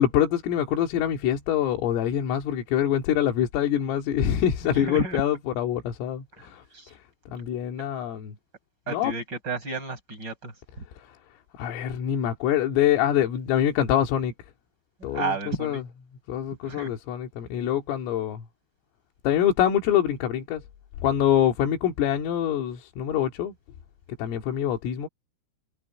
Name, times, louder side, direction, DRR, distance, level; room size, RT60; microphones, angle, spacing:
voice 1, 0.0-6.6 6.9-7.0 7.3-8.3 8.9-9.1 10.9-11.2 11.6-14.3 15.0-15.8 16.3-18.4 19.2-20.6 21.0-23.5 24.2-25.1, left 10 dB, 80° left, 4.8 m, -25 dB
voice 2, 4.6-5.2 6.7-6.9 7.3-7.4 8.9-10.5 15.0-15.8 16.6-16.9, right 3 dB, 20° right, 6.1 m, -32 dB
omnidirectional pair, 5.9 m